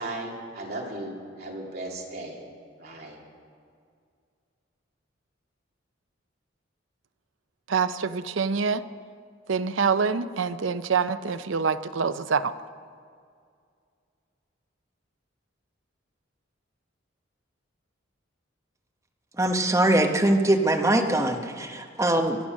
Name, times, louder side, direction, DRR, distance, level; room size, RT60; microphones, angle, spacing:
voice 1, 0.0-2.4 2.8-3.2, right 2 dB, 50° right, 2.7 m, -36 dB
voice 2, 7.7-8.8 9.5-12.5, right 5 dB, 80° right, 0.6 m, -25 dB
voice 3, 19.4-22.4, right 1 dB, 15° right, 1.0 m, -22 dB
24.0 x 8.4 x 6.4 m
head